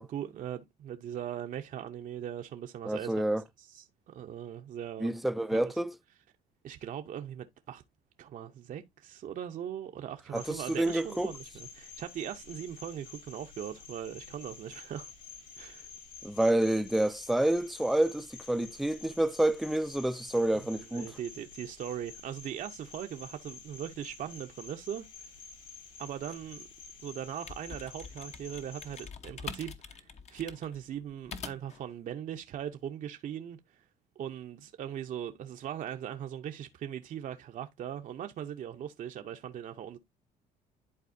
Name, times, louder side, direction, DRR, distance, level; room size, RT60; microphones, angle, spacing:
voice 1, 0.1-3.2 3.6-5.1 5.5-5.7 6.6-7.8 8.2-15.1 15.6-15.9 20.6-25.1 26.0-26.7 27.0-33.8 34.2-40.0, right 10 dB, 50° right, 0.7 m, -40 dB
voice 2, 2.9-3.4 5.0-5.9 10.3-11.3 16.2-21.1, right 1 dB, ahead, 0.4 m, -28 dB
Cricket, 10.3-29.0, left 5 dB, 75° left, 4.3 m, -50 dB
sound 1, 27.3-31.8, left 5 dB, 40° left, 0.9 m, -45 dB
11.0 x 4.1 x 2.6 m
cardioid pair, 110°, 17 cm